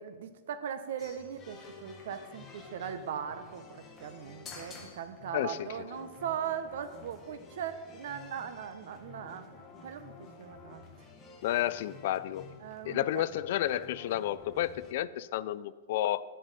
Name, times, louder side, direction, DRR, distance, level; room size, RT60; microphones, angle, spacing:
voice 1, 0.0-10.9 12.6-13.2, right 8 dB, 55° right, 10 dB, 0.9 m, -39 dB
sound 1, 1.0-14.9, left 4 dB, 15° left, 1.1 m, -51 dB
voice 2, 5.3-5.7 11.4-12.5 12.8-16.2, left 13 dB, 45° left, 16 dB, 0.3 m, -31 dB
12.5 x 10.0 x 4.2 m, 1.4 s
supercardioid pair, 180°, 0 cm